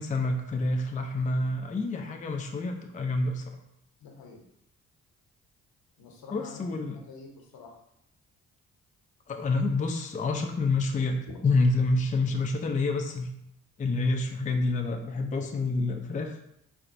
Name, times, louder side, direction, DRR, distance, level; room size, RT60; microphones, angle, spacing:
voice 1, 0.0-3.4 6.3-7.0 9.3-13.3 13.8-16.3, left 3 dB, 20° left, 3 dB, 0.5 m, -28 dB
voice 2, 4.0-4.4 6.0-7.7, left 4 dB, 65° left, 1 dB, 0.9 m, -48 dB
4.4 x 2.5 x 2.5 m, 0.77 s
hypercardioid pair, 45°, 39 cm